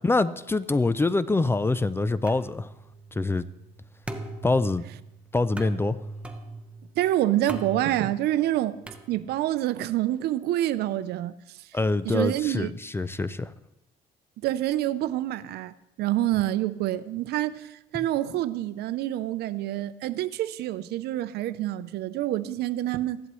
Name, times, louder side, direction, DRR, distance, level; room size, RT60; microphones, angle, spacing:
voice 1, 0.0-2.7 3.1-3.4 4.4-4.8 5.3-6.0 11.7-13.5, left 3 dB, 15° left, 0.4 m, -25 dB
sound 1, 2.3-9.6, right 2 dB, 5° right, 1.0 m, -41 dB
voice 2, 7.0-8.8 9.1-11.3 12.0-12.7 14.4-23.2, right 14 dB, 75° right, 0.6 m, -27 dB
15.5 x 11.0 x 3.1 m
cardioid pair, 110°, 17 cm